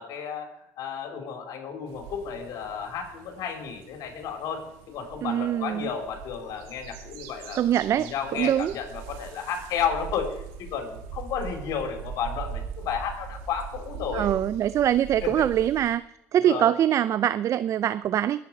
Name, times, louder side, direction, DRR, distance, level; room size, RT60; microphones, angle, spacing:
voice 1, 0.0-7.6 7.9-10.4 10.7-14.3 15.2-15.5 16.4-16.7, left 7 dB, 65° left, 3 dB, 4.4 m, -32 dB
sound 1, 1.9-15.9, right 7 dB, 85° right, 1.9 m, -41 dB
voice 2, 5.2-5.9 7.6-8.7 14.1-16.0 16.3-18.4, right 11 dB, 50° right, 16 dB, 0.5 m, -23 dB
21.5 x 9.3 x 4.9 m, 0.82 s
supercardioid pair, 80°, 6 cm